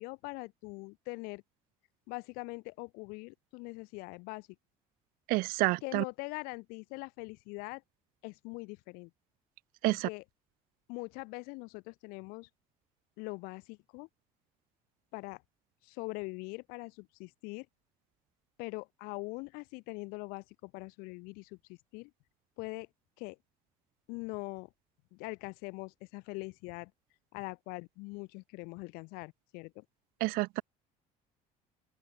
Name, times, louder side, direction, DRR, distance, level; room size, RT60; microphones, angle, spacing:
voice 1, 0.0-1.4 2.1-4.5 5.8-7.8 8.2-9.1 9.8-10.2 10.9-12.5 13.2-14.1 15.1-15.4 15.8-17.7 18.6-22.1 22.6-22.9 23.2-23.4 24.1-24.7 25.1-26.9 27.3-29.8, left 27 dB, 85° left, 7.7 m, -42 dB
voice 2, 5.3-6.0 9.8-10.1 30.2-30.6, right 22 dB, 75° right, 0.9 m, -29 dB
open air
cardioid pair, 120°, 15 cm